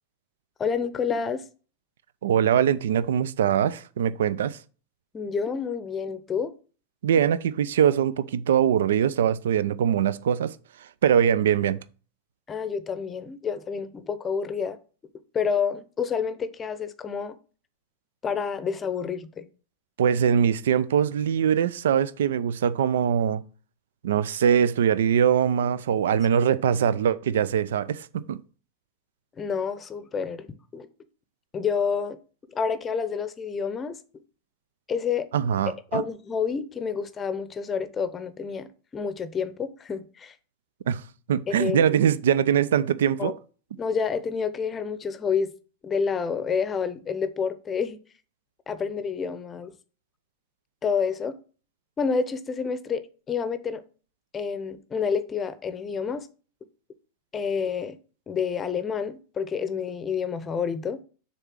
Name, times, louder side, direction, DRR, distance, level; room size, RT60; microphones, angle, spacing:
voice 1, 0.6-1.4 5.1-6.5 12.5-14.8 15.3-17.4 18.2-19.5 29.4-30.5 30.7-30.9 31.5-32.2 32.5-34.0 34.9-35.3 35.7-40.3 41.5-42.0 43.2-43.3 43.8-45.5 45.8-48.0 48.7-49.7 50.8-51.3 52.0-53.0 53.3-53.8 54.3-56.3 57.3-58.0 58.3-61.0, left 6 dB, 20° left, 0.7 m, -28 dB
voice 2, 2.2-4.6 7.0-10.6 11.0-11.8 20.0-23.4 24.0-28.4 35.3-36.0 40.9-41.0 41.3-43.3, right 8 dB, 60° right, 0.4 m, -22 dB
6.6 x 4.0 x 6.2 m
figure-of-eight pair, 90°, 0 cm